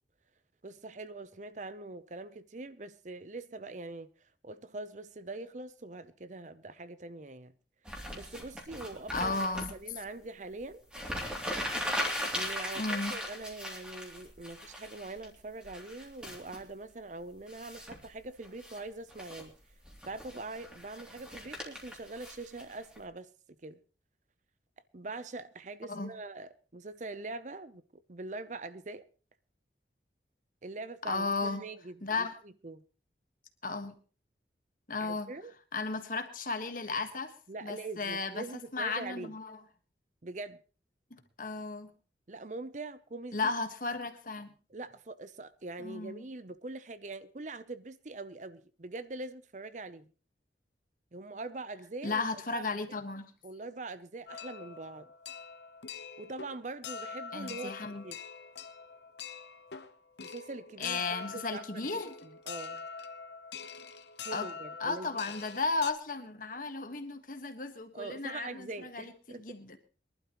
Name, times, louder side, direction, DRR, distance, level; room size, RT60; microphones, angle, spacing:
voice 1, 0.6-7.5 7.9-10.8 12.3-19.5 20.0-23.3 23.6-23.8 24.9-27.8 28.1-29.0 30.6-32.8 35.0-35.5 37.5-39.3 40.2-40.6 42.3-43.5 44.7-50.1 51.1-52.2 52.5-52.7 53.4-55.1 56.2-58.2 60.2-62.9 64.2-65.1 67.9-69.4, right 2 dB, 40° right, 0.7 m, -43 dB
sound 1, 7.9-9.7 10.6-10.7 10.9-15.3 15.6-16.6 17.5-18.1 18.4-18.8 19.1-19.4 19.9-23.0, equal, 5° right, 2.9 m, -38 dB
voice 2, 9.1-9.7 12.7-13.2 25.9-26.1 31.0-31.6 32.0-32.4 33.6-33.9 34.9-35.3 35.7-37.3 37.6-39.6 41.1-41.9 43.3-44.5 45.8-46.2 52.0-53.3 57.3-58.0 60.8-62.1 64.3-64.5 64.8-69.8, left 3 dB, 50° left, 1.5 m, -35 dB
sound 2, 54.3-65.9, left 6 dB, 75° left, 1.0 m, -44 dB
23.0 x 12.0 x 3.1 m
head